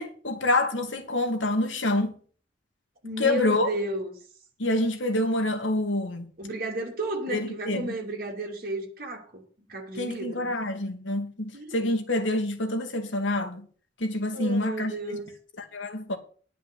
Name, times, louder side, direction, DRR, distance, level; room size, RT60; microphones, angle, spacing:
voice 1, 0.0-2.1 3.2-3.7 4.6-6.3 7.3-8.0 10.0-13.7 14.0-15.2 15.6-16.2, left 2 dB, 85° left, 2.0 m, -27 dB
voice 2, 3.0-4.1 6.4-9.4 9.7-10.5 11.5-11.9 14.3-15.3, right 2 dB, 50° right, 2.9 m, -33 dB
10.5 x 5.6 x 8.4 m
head